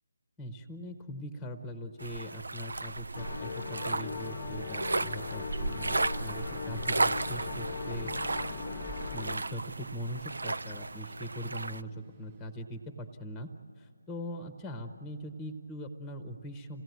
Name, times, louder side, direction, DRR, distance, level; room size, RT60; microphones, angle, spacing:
voice 1, 0.4-8.2 8.9-13.5 13.8-16.8, equal, 10° left, 8 dB, 1.1 m, -41 dB
sound 1, 2.0-11.8, right 3 dB, 70° right, 0.5 m, -34 dB
sound 2, 3.1-9.4, left 6 dB, 35° left, 0.9 m, -39 dB
sound 3, 6.0-12.5, right 6 dB, 30° right, 1.1 m, -52 dB
27.5 x 17.0 x 9.5 m, 2.4 s
figure-of-eight pair, 155°, 0 cm